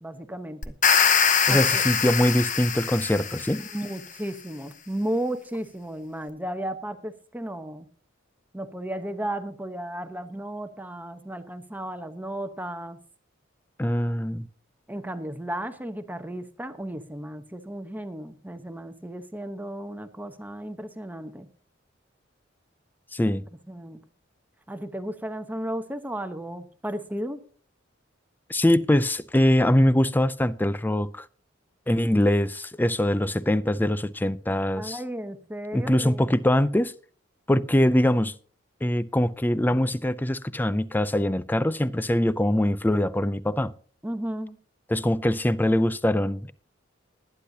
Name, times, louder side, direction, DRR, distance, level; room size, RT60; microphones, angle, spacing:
voice 1, 0.0-0.7 1.5-1.8 3.7-7.9 8.5-13.0 14.9-21.5 23.2-23.4 23.7-24.0 24.7-27.4 34.8-36.4 44.0-44.6, right 1 dB, 10° right, 1.0 m, -34 dB
sound 1, 0.6-3.8, left 7 dB, 40° left, 1.0 m, -23 dB
voice 2, 1.5-3.6 13.8-14.5 23.1-23.4 28.5-31.3 31.9-35.0 35.7-36.9 37.5-38.3 38.8-43.7 44.9-46.5, left 1 dB, 10° left, 0.4 m, -23 dB
20.0 x 10.0 x 2.8 m
head